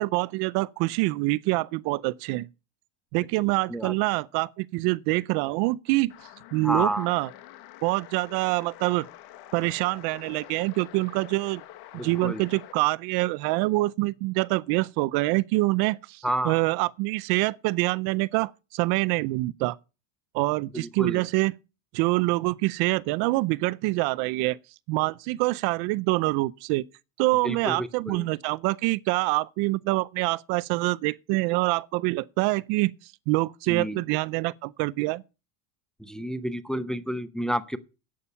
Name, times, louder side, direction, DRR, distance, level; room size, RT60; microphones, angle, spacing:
voice 1, 0.0-2.5 3.1-6.1 6.5-7.3 7.8-9.1 9.5-11.6 12.0-16.0 16.5-19.8 20.3-21.5 21.9-24.6 24.9-26.8 27.2-32.9 33.3-35.2, right 22 dB, 60° right, 0.6 m, -25 dB
sound 1, 6.1-12.8, left 14 dB, 60° left, 1.5 m, -47 dB
voice 2, 6.6-7.1 11.9-12.5 16.2-16.6 20.7-21.2 27.4-28.3 33.7-34.0 36.0-37.8, right 1 dB, ahead, 0.7 m, -30 dB
11.5 x 8.7 x 5.6 m
cardioid pair, 135°, 43 cm